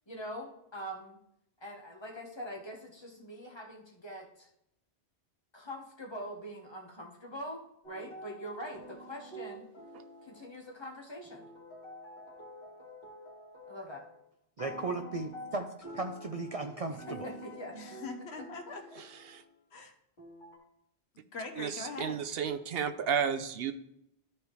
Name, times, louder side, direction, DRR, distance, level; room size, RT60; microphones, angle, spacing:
voice 1, 0.1-1.2 1.6-4.5 5.5-9.7 10.2-11.5 13.7-14.0 16.9-17.8, equal, 25° left, 0 dB, 1.3 m, -43 dB
sound 1, 7.8-10.8 11.2-14.2 14.6-19.5 20.2-20.6, equal, 45° left, 2.6 m, -48 dB
voice 2, 14.6-15.7 15.9-17.3, right 3 dB, 45° right, 4 dB, 0.5 m, -36 dB
voice 3, 17.7-19.0 19.7-19.9 21.3-22.2, left 3 dB, 80° left, 5 dB, 1.2 m, -42 dB
voice 4, 22.0-23.7, right 7 dB, 70° right, 10 dB, 0.8 m, -32 dB
13.0 x 4.7 x 3.2 m, 0.78 s
omnidirectional pair, 1.1 m